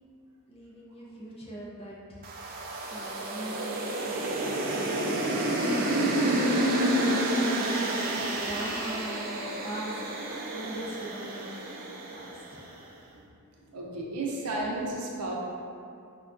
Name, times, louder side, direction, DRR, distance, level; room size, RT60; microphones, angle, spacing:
voice 1, 0.5-2.2 2.8-5.1 6.3-10.1 10.5-12.7, right 1 dB, 25° left, -5 dB, 0.5 m, -41 dB
sound 1, 2.2-12.6, right 1 dB, 40° right, 0.3 m, -29 dB
voice 2, 13.7-15.3, right 2 dB, 90° right, -2 dB, 0.6 m, -33 dB
4.4 x 2.2 x 2.5 m, 2.5 s
head